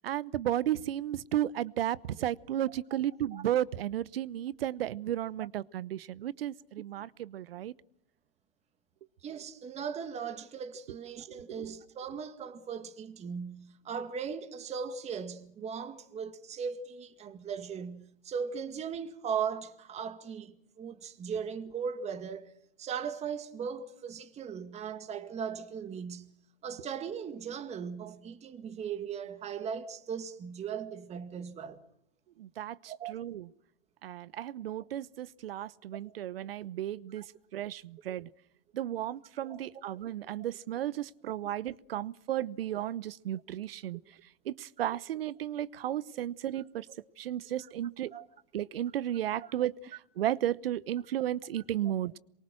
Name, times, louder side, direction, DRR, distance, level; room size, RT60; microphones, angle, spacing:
voice 1, 0.0-7.7 11.5-11.6 32.4-33.5 34.0-38.3 38.7-44.0 44.4-46.9 47.2-48.1 48.5-52.2, right 12 dB, 70° right, 1.0 m, -34 dB
voice 2, 9.2-22.5 22.8-26.3 26.6-31.8 32.9-33.1 36.0-36.1 37.2-37.3 39.4-39.6 40.0-40.1 40.4-40.5 41.4-41.5 48.1-48.3, right 7 dB, 20° right, 2.0 m, -38 dB
27.5 x 23.5 x 6.4 m
hypercardioid pair, 125°, 31 cm